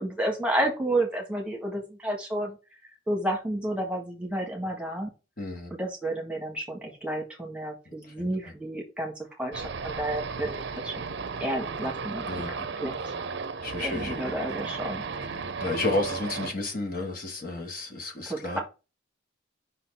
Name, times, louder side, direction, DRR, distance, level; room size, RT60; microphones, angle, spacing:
voice 1, 0.0-2.6 3.1-5.1 5.8-11.0 11.4-13.1 13.8-15.0 18.3-18.6, right 1 dB, 5° right, 1 dB, 1.5 m, -31 dB
voice 2, 5.4-5.7 8.0-8.5 10.4-10.5 12.2-12.6 13.0-13.1 13.6-14.3 15.3-18.6, left 2 dB, 45° left, 1 dB, 1.3 m, -32 dB
sound 1, 9.5-16.5, right 5 dB, 60° right, 0.6 m, -35 dB
5.4 x 4.2 x 5.4 m, 0.29 s
head